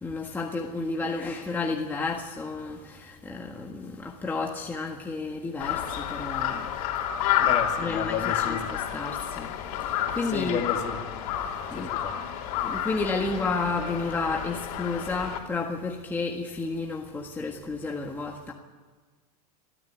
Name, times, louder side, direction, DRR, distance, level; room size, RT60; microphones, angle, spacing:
voice 1, 0.0-6.7 7.8-9.6 9.8-10.6 11.7-11.9 12.6-18.5, left 3 dB, 10° left, 0 dB, 1.6 m, -31 dB
Crow, 5.6-15.4, left 10 dB, 65° left, 3.7 m, -30 dB
voice 2, 7.4-8.6 10.3-11.0 11.7-12.1, left 7 dB, 35° left, 4 dB, 2.6 m, -32 dB
24.0 x 14.0 x 9.3 m, 1.4 s
supercardioid pair, 150°, 20 cm